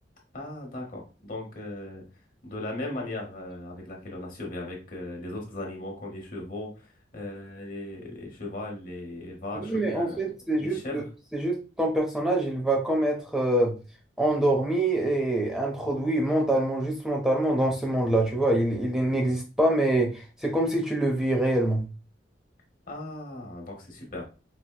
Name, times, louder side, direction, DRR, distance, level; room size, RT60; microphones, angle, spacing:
voice 1, 0.3-2.0 2.4-10.2 10.6-11.0 22.9-24.3, left 2 dB, 50° left, 0 dB, 1.0 m, -37 dB
voice 2, 9.5-11.0 11.3-13.7 14.2-21.8, right 1 dB, 5° right, 0 dB, 0.5 m, -25 dB
4.2 x 2.1 x 2.2 m, 0.33 s
head